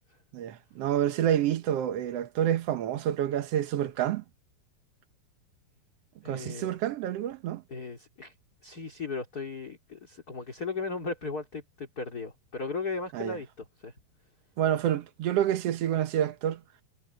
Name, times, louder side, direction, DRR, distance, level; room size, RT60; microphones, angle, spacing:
voice 1, 0.3-4.2 6.2-7.6 13.1-13.4 14.6-16.6, right 11 dB, 75° right, 1.4 m, -28 dB
voice 2, 6.2-6.8 7.7-8.3 8.6-13.9, left 4 dB, 25° left, 3.6 m, -36 dB
omnidirectional pair, 4.3 m